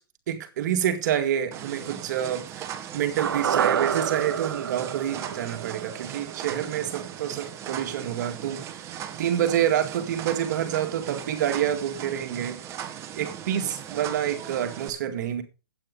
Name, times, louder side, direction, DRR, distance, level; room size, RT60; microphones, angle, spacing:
voice 1, 0.3-8.9 9.2-12.6 13.2-15.4, right 10 dB, 50° right, 2.1 m, -28 dB
sound 1, 1.5-14.9, right 10 dB, 20° right, 1.4 m, -38 dB
sound 2, 3.2-7.5 7.8-7.9, right 8 dB, 70° right, 0.7 m, -29 dB
12.0 x 8.8 x 5.4 m
hypercardioid pair, 135°, 13 cm